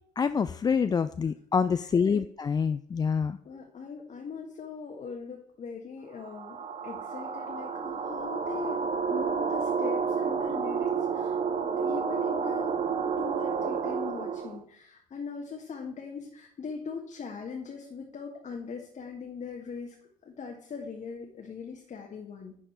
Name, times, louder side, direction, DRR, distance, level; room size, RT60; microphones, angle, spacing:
voice 1, 0.2-3.4, left 6 dB, 20° left, 11 dB, 0.3 m, -26 dB
voice 2, 1.8-2.2 3.4-6.6 6.8-19.9 20.2-22.6, left 5 dB, 40° left, 1 dB, 1.4 m, -41 dB
sound 1, 6.2-14.6, right 6 dB, 35° right, 0.9 m, -30 dB
10.5 x 4.2 x 4.4 m, 0.63 s
hypercardioid pair, 55°, 19 cm